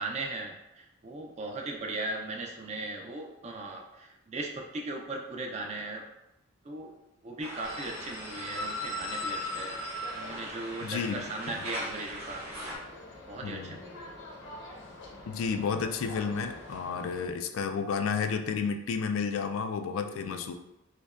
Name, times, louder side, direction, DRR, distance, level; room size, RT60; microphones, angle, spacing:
voice 1, 0.0-6.1 6.6-6.9 7.2-9.8 10.1-12.5 13.3-14.1 20.1-20.4, right 2 dB, 30° right, 1 dB, 0.4 m, -38 dB
sound 1, 7.4-12.8, equal, 45° right, 1.0 m, -41 dB
sound 2, 7.6-17.3, left 1 dB, 60° left, 0.7 m, -41 dB
voice 2, 10.8-11.2 11.5-11.6 13.4-13.8 15.3-20.5, left 5 dB, 75° left, 7 dB, 0.3 m, -31 dB
5.0 x 2.2 x 2.4 m, 0.93 s
head